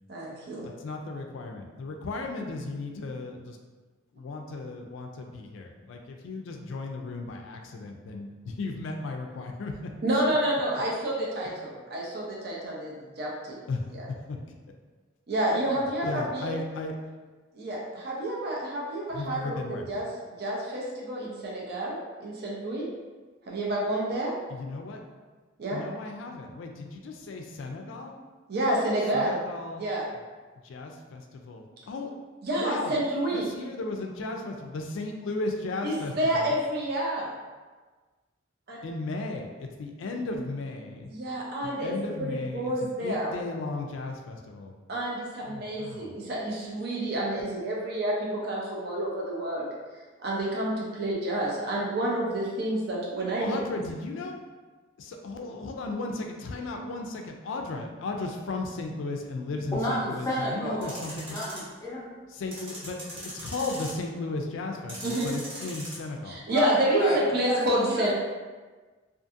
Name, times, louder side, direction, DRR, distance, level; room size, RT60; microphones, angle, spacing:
voice 1, 0.1-0.7 10.0-13.6 15.3-16.5 17.5-19.6 19.9-20.1 20.4-22.9 23.5-24.3 25.6-25.8 28.5-29.4 29.8-30.1 32.4-33.5 35.8-37.3 38.7-38.8 41.1-43.3 44.9-49.7 50.2-53.6 65.0-65.3 66.3-68.1, right 1 dB, 50° right, -4 dB, 0.5 m, -29 dB
voice 2, 0.6-3.6 4.1-9.9 11.5-11.6 13.7-14.5 15.5-15.6 16.0-17.0 19.1-19.9 24.5-25.0 25.7-28.2 29.1-29.8 30.6-32.2 32.5-33.0 33.3-36.5 38.8-41.1 41.6-44.8 45.5-46.1 53.4-54.4 55.0-61.4 62.3-66.5, left 3 dB, 75° left, 3 dB, 0.3 m, -35 dB
voice 3, 59.7-61.0 61.3-62.1 66.5-67.2 67.5-68.1, equal, 15° left, -7 dB, 0.5 m, -31 dB
sound 1, 60.8-61.6 62.5-64.1 64.9-66.0, equal, 30° right, 0.8 m, -40 dB
2.6 x 2.4 x 2.4 m, 1.4 s
head